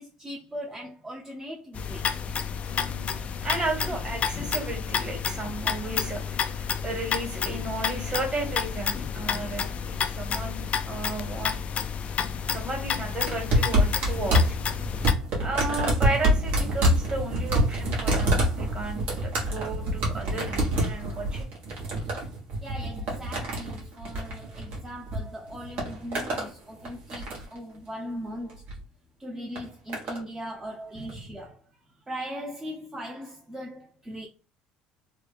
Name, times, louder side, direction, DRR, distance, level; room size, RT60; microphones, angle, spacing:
voice 1, 0.0-2.1 22.6-28.6 29.2-31.7 32.1-34.3, equal, 15° right, 0.7 m, -39 dB
sound 1, 1.7-15.1, left 7 dB, 45° left, 0.4 m, -30 dB
voice 2, 2.6-11.6 12.5-14.6 15.4-21.4 31.0-31.3, right 2 dB, 35° right, 1.7 m, -34 dB
sound 2, 13.3-25.2 25.5-26.5 26.9-27.6 28.5-28.8 29.6-30.2 31.1-31.2, right 1 dB, 60° right, 1.4 m, -26 dB
3.4 x 2.2 x 3.4 m
supercardioid pair, 80°, 3 cm